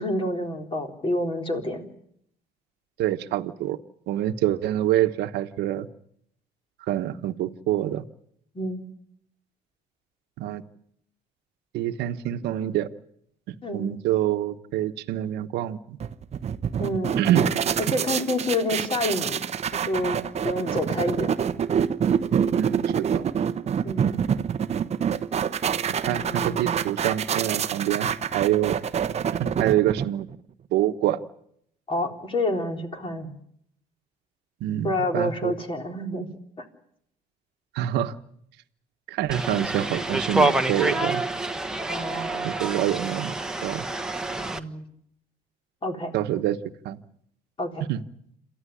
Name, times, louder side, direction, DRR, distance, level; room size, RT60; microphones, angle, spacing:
voice 1, 0.0-1.8 8.5-8.8 13.6-13.9 16.8-17.2 17.8-19.4 19.9-21.4 23.8-24.2 26.0-26.8 31.9-33.3 34.8-36.3 41.9-42.5 44.4-44.9 45.8-46.2 47.6-47.9, left 1 dB, 30° left, 3 dB, 4.0 m, -28 dB
voice 2, 3.0-3.8 4.1-5.9 6.9-8.0 10.4-10.6 11.7-12.9 13.5-16.0 17.2-17.5 22.5-23.2 26.1-28.8 29.4-30.3 30.7-31.2 34.6-35.5 37.7-38.1 39.1-41.2 42.4-43.4 43.6-43.8 46.1-46.6 46.8-47.0 47.9-48.0, right 12 dB, 80° right, 9 dB, 1.2 m, -26 dB
sound 1, 16.0-30.4, right 8 dB, 40° right, 0.9 m, -26 dB
sound 2, 39.3-44.6, right 2 dB, 5° right, 1.4 m, -27 dB
28.0 x 14.0 x 9.9 m, 0.73 s
cardioid pair, 110°, 17 cm